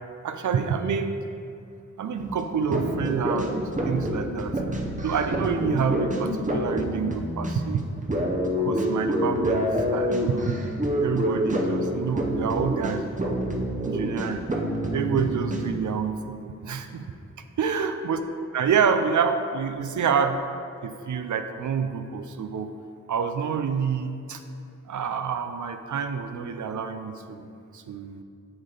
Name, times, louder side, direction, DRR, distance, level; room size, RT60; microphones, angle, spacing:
voice 1, 0.2-1.2 2.0-4.6 5.0-7.8 8.6-10.6 11.0-13.3 13.8-14.5 14.9-17.0 17.6-18.2 18.5-20.4 20.8-22.7 23.1-24.4 24.9-27.5 27.7-28.2, right 6 dB, 75° right, 8 dB, 0.5 m, -28 dB
sound 1, 2.2-15.7, equal, 25° right, 0.7 m, -27 dB
7.7 x 4.2 x 3.9 m, 2.5 s
wide cardioid pair, 80°, 31 cm